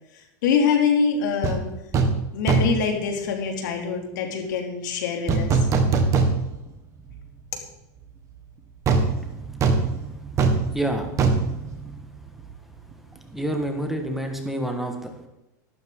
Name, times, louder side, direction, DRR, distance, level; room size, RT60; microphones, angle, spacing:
voice 1, 0.4-1.7 2.3-5.6, left 6 dB, 80° left, 2 dB, 2.9 m, -24 dB
sound 1, 1.4-1.6 1.9-2.2 2.5-2.9 5.3-6.7 7.1-7.2 8.9-12.5 12.8-12.9, right 4 dB, 30° right, 1.6 m, -22 dB
voice 2, 10.7-11.1 13.3-15.3, right 1 dB, ahead, 3 dB, 1.5 m, -28 dB
13.0 x 12.0 x 3.8 m, 0.93 s
supercardioid pair, 135°, 10 cm